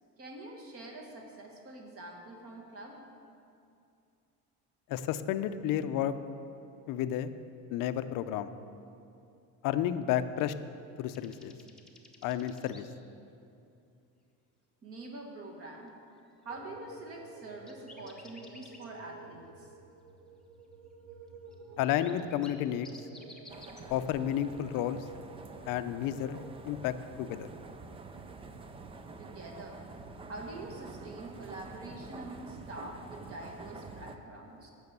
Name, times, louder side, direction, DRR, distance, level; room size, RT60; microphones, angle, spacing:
voice 1, 0.2-3.0 14.8-15.9 16.5-19.7 29.2-29.8 30.3-34.7, right 2 dB, 40° right, 1 dB, 1.7 m, -45 dB
voice 2, 4.9-6.2 6.9-7.3 7.7-8.5 9.6-10.5 11.0-11.5 12.2-12.9 21.8-22.9 23.9-25.1 25.6-26.4 26.7-27.5, left 11 dB, 60° left, 11 dB, 0.6 m, -31 dB
sound 1, 11.1-12.8 16.2-16.3 16.6-18.9 21.5-21.6 21.9-23.8, left 2 dB, ahead, 1.0 m, -54 dB
sound 2, 16.5-26.6, right 4 dB, 70° right, 1.1 m, -52 dB
sound 3, 23.5-34.2, right 3 dB, 15° right, 0.4 m, -47 dB
9.5 x 6.3 x 8.1 m, 2.6 s
cardioid pair, 140°, 37 cm